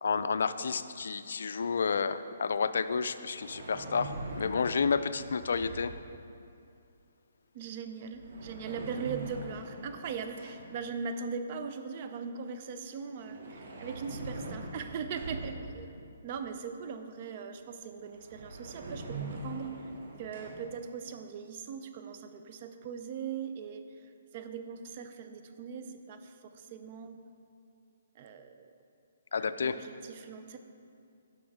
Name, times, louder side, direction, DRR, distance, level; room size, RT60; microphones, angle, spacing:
voice 1, 0.0-5.9 29.3-29.7, left 5 dB, 70° left, 11 dB, 0.4 m, -30 dB
sound 1, 3.3-6.0 8.0-10.8 13.0-15.9 17.8-17.9 18.1-20.5, right 2 dB, 65° right, 2.0 m, -42 dB
voice 2, 7.5-15.9 16.2-19.7 20.2-27.2 28.1-28.7 29.4-30.6, right 6 dB, 40° right, 8 dB, 0.6 m, -40 dB
15.5 x 6.1 x 3.6 m, 2.5 s
hypercardioid pair, 155°, 0 cm